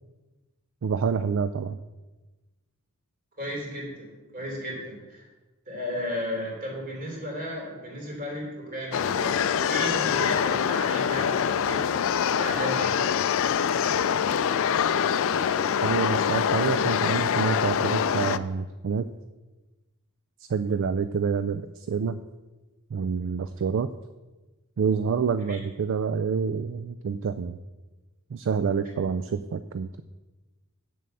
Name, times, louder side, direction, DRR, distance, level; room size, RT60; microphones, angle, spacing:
voice 1, 0.8-1.8 15.8-19.1 20.4-22.2 22.9-23.9 24.8-27.6 28.3-30.0, right 6 dB, 60° right, 11 dB, 0.4 m, -27 dB
voice 2, 3.4-5.3 5.7-9.4 9.7-13.0 25.5-25.6, equal, 40° right, -2 dB, 3.4 m, -34 dB
sound 1, 8.9-18.4, left 7 dB, 65° left, 0.4 m, -24 dB
7.8 x 7.5 x 6.8 m, 1.2 s
head